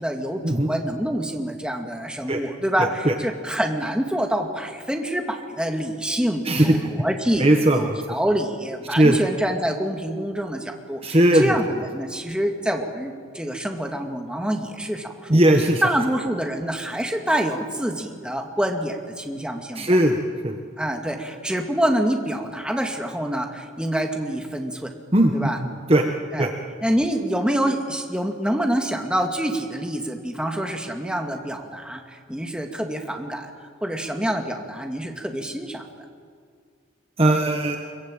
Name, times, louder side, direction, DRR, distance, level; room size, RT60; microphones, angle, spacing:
voice 1, 0.0-15.4 15.8-20.0 20.8-24.9 25.3-25.6 26.3-26.5 26.8-33.5 33.8-35.8, right 1 dB, 5° right, 3 dB, 2.3 m, -26 dB
voice 2, 2.8-3.1 6.4-6.7 7.4-8.0 9.0-9.2 11.0-11.5 15.3-15.8 19.7-20.2 20.4-20.6 25.1-26.1 26.4-26.5 37.2-37.8, right 1 dB, 30° right, 4 dB, 1.4 m, -18 dB
25.5 x 23.0 x 9.0 m, 2.1 s
head